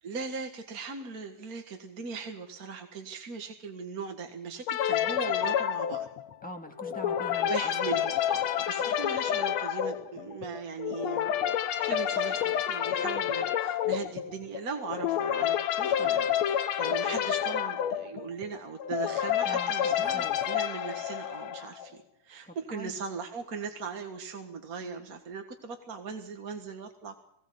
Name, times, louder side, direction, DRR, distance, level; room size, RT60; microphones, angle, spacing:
voice 1, 0.0-6.1 7.5-11.3 11.8-27.2, right 5 dB, 40° right, 4 dB, 1.4 m, -39 dB
sound 1, 4.7-21.9, left 10 dB, 65° left, 2.0 m, -29 dB
voice 2, 6.4-8.0 19.4-20.5 22.5-23.0, equal, 5° left, 3 dB, 1.4 m, -43 dB
21.5 x 17.5 x 7.8 m, 0.74 s
omnidirectional pair, 3.7 m